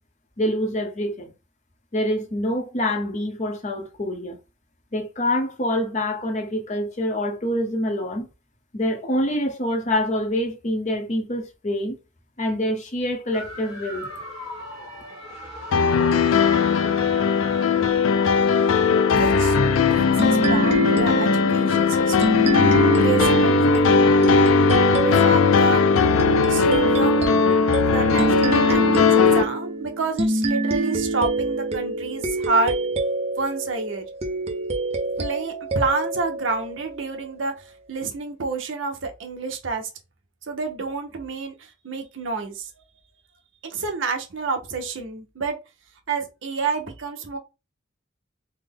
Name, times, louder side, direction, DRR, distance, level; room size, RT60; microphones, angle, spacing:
voice 1, 0.4-1.3 1.9-4.4 4.9-8.3 8.7-12.0 12.4-14.1, left 1 dB, 35° left, 0.7 m, -26 dB
sound 1, 13.3-19.9, equal, 70° left, 1.3 m, -39 dB
sound 2, 15.7-29.4, left 5 dB, 85° left, 0.4 m, -18 dB
voice 2, 19.1-22.4 23.0-24.6 25.0-25.8 26.5-27.3 27.8-32.7 33.4-34.0 35.2-37.5 37.9-39.9 40.5-42.7 43.6-45.6 46.1-47.4, right 4 dB, 70° right, 0.8 m, -29 dB
sound 3, 20.2-37.3, right 2 dB, 30° right, 0.5 m, -26 dB
3.4 x 2.0 x 3.6 m
head